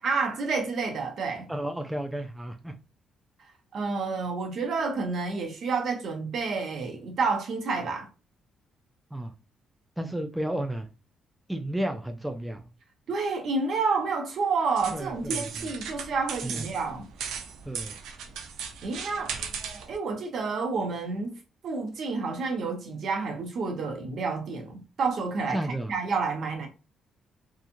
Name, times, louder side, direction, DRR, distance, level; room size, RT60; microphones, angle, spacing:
voice 1, 0.0-1.5 3.7-8.1 13.1-17.1 18.8-19.4 19.9-21.3 21.6-26.7, right 4 dB, 60° right, 0.9 m, -29 dB
voice 2, 1.5-2.7 9.1-9.3 10.0-10.9 11.5-12.7 14.9-15.7 16.4-16.6 17.7-18.0 25.5-25.9, right 1 dB, 5° right, 0.4 m, -32 dB
sound 1, 14.8-20.0, right 6 dB, 85° right, 0.5 m, -37 dB
2.8 x 2.4 x 2.5 m
cardioid pair, 90°, 0 cm